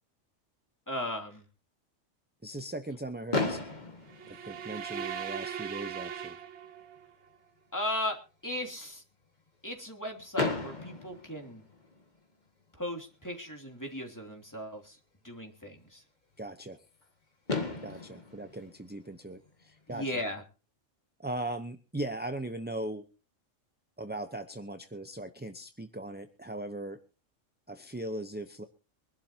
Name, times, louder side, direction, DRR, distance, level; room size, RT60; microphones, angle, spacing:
voice 1, 0.9-1.4 7.7-8.2 8.4-9.0 9.6-11.6 12.8-15.0 15.2-16.0 19.9-20.4, left 1 dB, 15° left, 2 dB, 2.9 m, -36 dB
voice 2, 2.4-3.6 4.3-6.4 16.4-16.8 17.8-20.2 21.2-23.0 24.0-27.0 27.7-28.6, right 1 dB, 10° right, 7 dB, 0.6 m, -39 dB
Fireworks, 3.3-5.3 6.2-6.3 6.4-6.6 7.0-7.1 10.3-12.2 13.9-14.0 17.0-17.1 17.5-19.8, left 3 dB, 35° left, 2.0 m, -35 dB
sound 1, 4.1-7.1, right 8 dB, 65° right, 1.2 m, -39 dB
24.0 x 12.0 x 2.8 m, 0.35 s
omnidirectional pair, 1.3 m